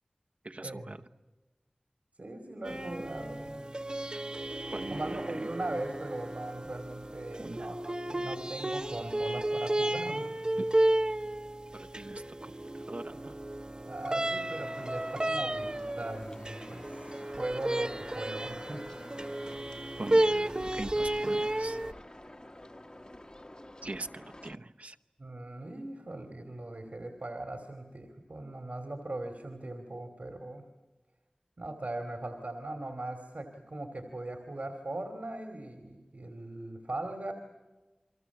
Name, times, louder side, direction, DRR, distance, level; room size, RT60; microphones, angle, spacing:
voice 1, 0.4-1.0 4.7-5.5 7.4-7.7 10.6-10.7 11.7-13.3 20.0-21.9 23.8-25.0, right 2 dB, 65° right, 8 dB, 0.8 m, -42 dB
voice 2, 2.2-3.6 4.9-10.3 13.8-18.8 19.2-19.3 25.2-30.6 31.6-37.3, right 2 dB, 80° right, 5 dB, 2.7 m, -39 dB
sound 1, 2.7-21.9, right 1 dB, 35° right, 0.8 m, -33 dB
sound 2, 14.6-24.6, left 1 dB, 35° left, 1.0 m, -49 dB
29.5 x 23.0 x 7.3 m, 1.1 s
wide cardioid pair, 45°, 3 cm